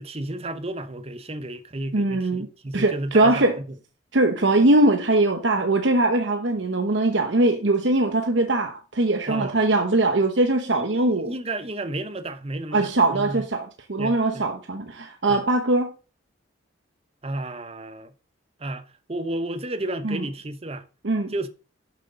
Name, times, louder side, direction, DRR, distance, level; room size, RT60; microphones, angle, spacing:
voice 1, 0.0-3.5 9.3-9.6 10.7-13.4 14.0-14.4 15.3-15.4 17.2-18.1 18.6-20.8 21.3-21.5, right 1 dB, 30° right, 0.8 m, -32 dB
voice 2, 1.9-2.5 2.7-3.5 4.1-11.3 12.7-15.9 20.0-20.2 21.0-21.3, right 2 dB, 65° right, 1.1 m, -21 dB
11.0 x 7.5 x 3.8 m
head